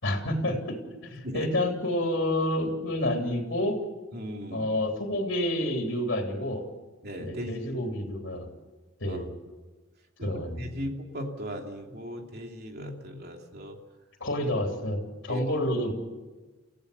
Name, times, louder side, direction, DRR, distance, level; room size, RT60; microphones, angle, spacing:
voice 1, 0.0-0.8 1.0-3.8 4.5-6.6 7.2-8.5 9.0-9.3 10.2-10.7 14.2-15.9, left 1 dB, 65° left, 2 dB, 3.4 m, -29 dB
voice 2, 1.2-1.5 4.1-4.7 7.0-7.5 9.0-9.2 10.2-13.8 15.3-15.5, equal, 55° right, 2 dB, 2.9 m, -37 dB
29.5 x 15.5 x 7.0 m, 1.3 s
head